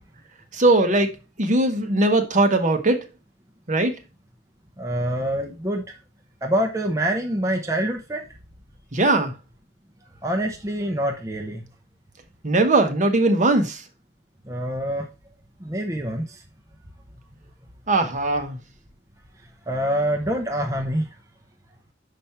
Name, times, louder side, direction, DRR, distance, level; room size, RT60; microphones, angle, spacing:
voice 1, 0.5-1.1 1.4-3.0 3.7-4.0 8.9-9.3 12.4-13.8 17.9-18.6, right 2 dB, 40° right, 1.0 m, -20 dB
voice 2, 4.8-5.8 6.4-8.3 10.2-11.6 14.5-15.1 15.6-16.4 19.7-21.1, right 1 dB, 15° right, 0.7 m, -25 dB
5.7 x 5.1 x 4.3 m
head